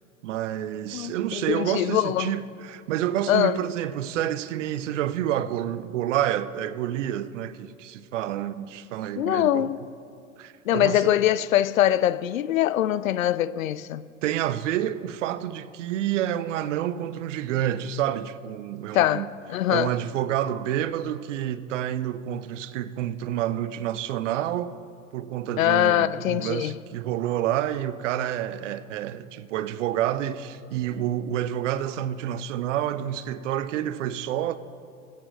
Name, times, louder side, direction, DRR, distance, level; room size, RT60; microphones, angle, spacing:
voice 1, 0.2-9.7 10.4-11.1 14.2-19.3 19.7-24.7 25.1-34.5, right 11 dB, 65° right, 0.7 m, -28 dB
voice 2, 0.9-2.3 3.3-3.6 9.2-9.8 10.7-14.1 18.9-19.9 25.6-26.8, left 12 dB, 80° left, 0.5 m, -23 dB
22.0 x 8.5 x 3.2 m
figure-of-eight pair, 85°, 40 cm